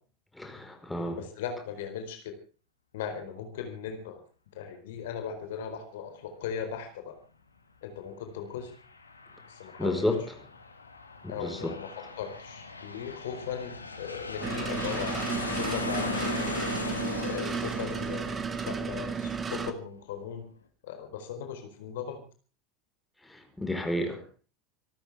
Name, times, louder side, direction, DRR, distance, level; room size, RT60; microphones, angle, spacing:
voice 1, 0.3-1.2 9.8-10.2 11.2-11.7 23.2-24.4, left 1 dB, 5° left, 5 dB, 4.8 m, -31 dB
voice 2, 1.2-2.4 2.9-4.2 4.5-7.2 7.8-8.7 9.5-10.0 11.3-16.5 17.2-20.4 20.8-22.2 24.0-24.2, left 7 dB, 60° left, 7 dB, 4.4 m, -38 dB
Aircraft, 8.5-19.7, left 3 dB, 85° left, 2.4 m, -38 dB
sound 1, 14.4-19.7, right 5 dB, 20° right, 2.1 m, -33 dB
26.0 x 13.5 x 3.6 m, 0.36 s
figure-of-eight pair, 80°, 0 cm